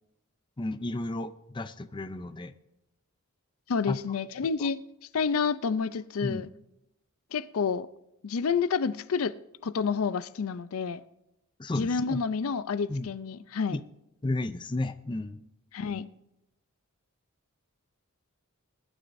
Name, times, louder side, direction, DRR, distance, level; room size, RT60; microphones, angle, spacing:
voice 1, 0.6-2.5 3.9-4.0 4.6-4.7 6.2-6.5 11.6-12.2 12.9-13.1 13.7-13.8 14.2-15.4, left 2 dB, 20° left, 0.5 m, -33 dB
voice 2, 3.7-4.8 5.1-6.5 7.3-7.9 8.2-9.3 9.6-11.0 11.7-13.8 15.7-16.1, left 5 dB, 75° left, 0.5 m, -29 dB
20.5 x 11.5 x 2.6 m
head